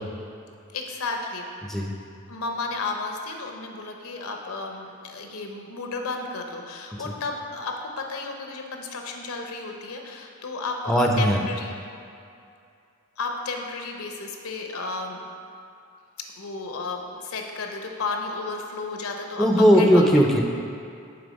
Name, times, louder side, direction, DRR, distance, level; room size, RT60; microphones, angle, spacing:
voice 1, 0.7-1.5 2.3-11.8 13.2-15.2 16.2-20.0, left 3 dB, 80° left, 2 dB, 0.7 m, -33 dB
voice 2, 10.9-11.4 19.4-20.4, equal, ahead, 1 dB, 0.4 m, -18 dB
6.9 x 3.5 x 5.2 m, 2.5 s
head